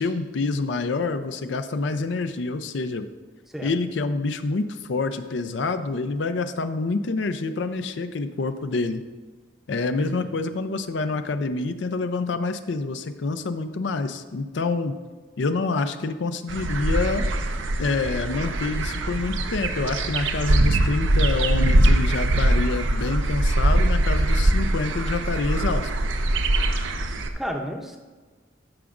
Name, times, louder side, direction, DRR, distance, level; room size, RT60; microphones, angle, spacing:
voice 1, 0.0-3.1 3.6-9.0 9.7-15.0 15.4-17.3 17.8-25.9, left 3 dB, 75° left, 10 dB, 0.5 m, -27 dB
sound 1, 16.5-27.3, right 1 dB, 85° right, 0.6 m, -22 dB
voice 2, 27.3-28.0, equal, ahead, 2 dB, 0.6 m, -31 dB
13.5 x 5.9 x 2.5 m, 1.4 s
head